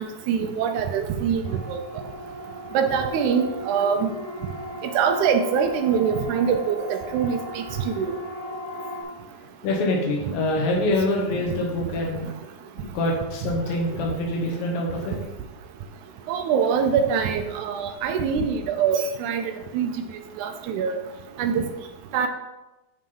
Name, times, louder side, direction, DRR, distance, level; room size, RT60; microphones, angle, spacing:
voice 1, 0.0-1.8 2.7-4.1 4.9-8.2 16.3-19.4 19.7-19.9 20.4-21.0 21.4-21.6 22.1-22.3, right 7 dB, 80° right, 6 dB, 1.8 m, -24 dB
Siren, 1.4-9.0, equal, 40° left, 2.0 m, -36 dB
voice 2, 9.6-12.3 12.8-15.2, left 1 dB, 90° left, -1 dB, 2.9 m, -25 dB
8.9 x 3.9 x 5.4 m, 0.99 s
omnidirectional pair, 4.0 m